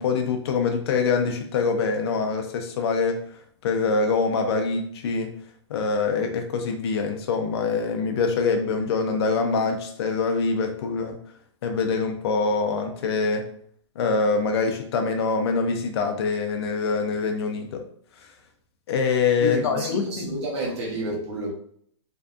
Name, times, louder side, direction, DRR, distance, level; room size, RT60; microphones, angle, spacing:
voice 1, 0.0-3.2 3.6-5.4 5.7-11.2 11.6-13.4 14.0-17.8 18.9-20.4, left 4 dB, 55° left, 4 dB, 0.4 m, -24 dB
voice 2, 19.4-21.5, right 2 dB, 60° right, -4 dB, 0.9 m, -30 dB
2.6 x 2.3 x 2.3 m, 0.63 s
hypercardioid pair, 160°, 16 cm